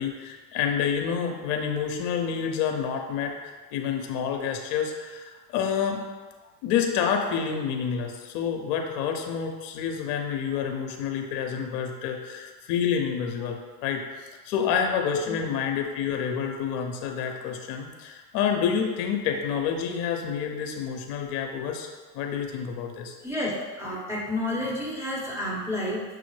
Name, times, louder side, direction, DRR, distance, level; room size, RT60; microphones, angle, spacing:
voice 1, 0.0-6.1 6.6-21.9 22.1-23.1, left 7 dB, 65° left, 3 dB, 0.7 m, -28 dB
voice 2, 23.2-26.0, left 1 dB, 5° right, -5 dB, 0.9 m, -30 dB
6.0 x 2.0 x 3.1 m, 1.3 s
supercardioid pair, 105°, 49 cm